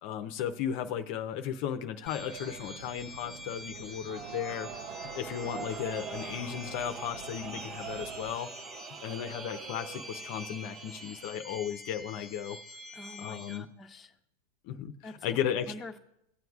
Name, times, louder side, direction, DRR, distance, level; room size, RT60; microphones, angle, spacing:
voice 1, 0.0-8.5 9.0-12.6 13.2-13.7 14.6-15.7, left 9 dB, 55° left, 8 dB, 0.6 m, -35 dB
sound 1, 2.1-13.6, left 1 dB, ahead, 1.2 m, -47 dB
sound 2, 2.2-8.4, right 6 dB, 75° right, 0.5 m, -49 dB
sound 3, 4.1-11.3, right 6 dB, 35° right, 0.7 m, -43 dB
voice 2, 12.9-14.1 15.0-15.4 15.7-16.0, left 2 dB, 15° left, 2 dB, 0.8 m, -46 dB
18.0 x 7.8 x 2.4 m, 0.81 s
hypercardioid pair, 120°, 0 cm